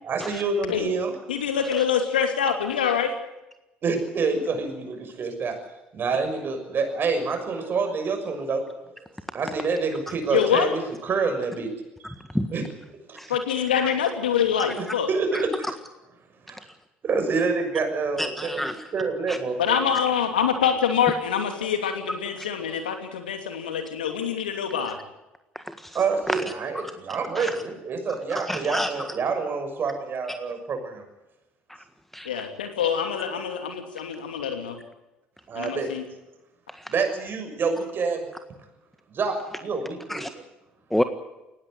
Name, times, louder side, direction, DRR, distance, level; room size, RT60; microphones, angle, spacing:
voice 1, 0.0-1.1 3.8-5.6 5.9-8.6 9.3-11.7 12.5-12.6 13.1-13.2 15.1-15.7 16.5-16.6 17.0-19.8 25.9-31.0 35.5-35.9 36.9-38.2 39.1-40.2, right 4 dB, 45° right, 6 dB, 6.5 m, -27 dB
voice 2, 1.3-3.1 10.3-10.7 13.3-15.1 19.6-25.0 32.2-34.8 35.5-36.0, left 8 dB, 90° left, 6 dB, 2.8 m, -25 dB
voice 3, 18.2-18.7 19.3-19.4 25.5-26.0 26.3-26.4 27.3-27.5 28.5-28.9 32.1-32.3 36.7-36.9 40.1-40.3 40.9-41.0, equal, 5° left, 9 dB, 1.6 m, -28 dB
20.0 x 16.5 x 9.6 m, 0.98 s
hypercardioid pair, 60°, 5 cm